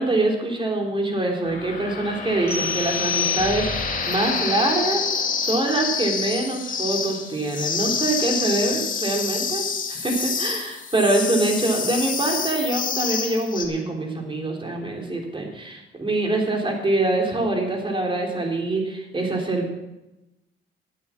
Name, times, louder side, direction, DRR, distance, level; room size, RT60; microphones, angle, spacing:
voice 1, 0.0-9.6 9.9-19.8, right 2 dB, 25° right, 1 dB, 3.6 m, -24 dB
sound 1, 1.4-13.7, left 5 dB, 40° left, 2.0 m, -28 dB
sound 2, 2.5-4.0, left 6 dB, 10° left, 4.9 m, -27 dB
11.0 x 8.8 x 7.3 m, 0.99 s
cardioid pair, 90°, 20 cm